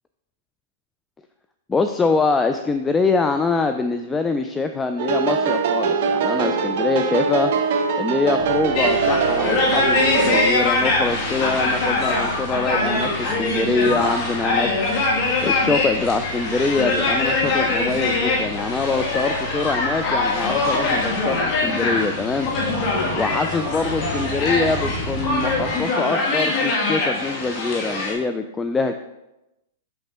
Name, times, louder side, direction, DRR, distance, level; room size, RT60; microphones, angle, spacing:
voice 1, 1.7-14.7 15.1-22.5 23.2-28.9, left 4 dB, 15° left, 8 dB, 0.3 m, -24 dB
sound 1, 5.0-10.5, right 5 dB, 55° right, 0.6 m, -22 dB
sound 2, 8.4-25.8, left 2 dB, 65° left, 1.0 m, -34 dB
sound 3, 8.8-28.1, left 2 dB, 40° left, 1.7 m, -23 dB
6.3 x 5.8 x 3.0 m, 0.93 s
hypercardioid pair, 110°, 0 cm